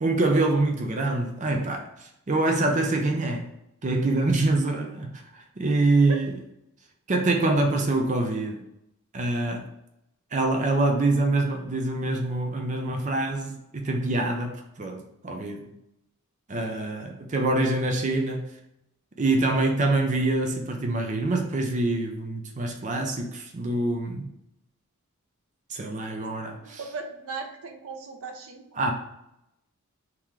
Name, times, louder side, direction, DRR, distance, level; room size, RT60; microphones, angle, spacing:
voice 1, 0.0-3.5 3.8-6.4 7.1-8.6 9.1-9.7 10.3-15.7 16.5-18.5 19.2-24.3 25.7-26.8 28.8-28.9, right 2 dB, 35° right, 0.5 m, -25 dB
voice 2, 26.2-28.6, right 4 dB, 70° right, 0.7 m, -38 dB
3.7 x 3.0 x 4.6 m
head